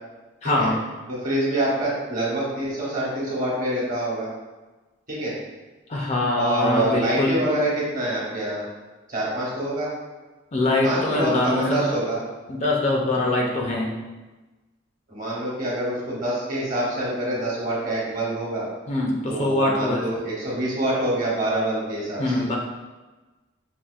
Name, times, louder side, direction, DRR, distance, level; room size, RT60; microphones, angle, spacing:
voice 1, 0.4-0.8 5.9-7.4 10.5-11.9 12.5-13.9 18.9-20.0 22.2-22.6, left 2 dB, 35° left, -1 dB, 0.5 m, -23 dB
voice 2, 1.1-4.3 5.1-5.3 6.4-8.6 9.1-9.9 10.8-12.2 15.1-18.7 19.3-22.2, right 1 dB, 45° right, -5 dB, 1.1 m, -26 dB
5.4 x 2.4 x 2.4 m, 1.2 s
head